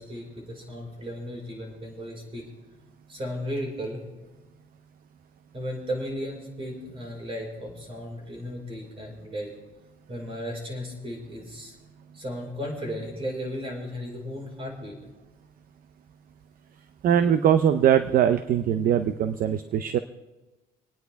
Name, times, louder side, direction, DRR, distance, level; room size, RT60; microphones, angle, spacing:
voice 1, 0.0-2.5 3.1-4.1 5.5-9.5 10.1-11.7 12.1-15.0, equal, 35° right, 0 dB, 4.9 m, -35 dB
voice 2, 17.0-20.0, right 9 dB, 55° right, 11 dB, 0.6 m, -21 dB
26.5 x 9.6 x 3.5 m, 1.1 s
cardioid pair, 110°, 17 cm